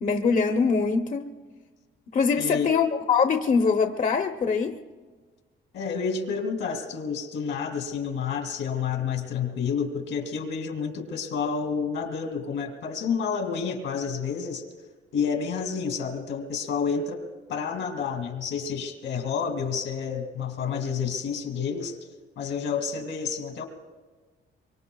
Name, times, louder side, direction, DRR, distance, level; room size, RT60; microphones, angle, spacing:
voice 1, 0.0-1.3 2.1-4.8, left 5 dB, 40° left, 5 dB, 0.8 m, -23 dB
voice 2, 2.4-2.7 5.7-14.6 15.1-22.0 22.4-23.7, left 6 dB, 80° left, 5 dB, 2.4 m, -29 dB
24.0 x 24.0 x 2.3 m, 1.4 s
cardioid pair, 90°, 20 cm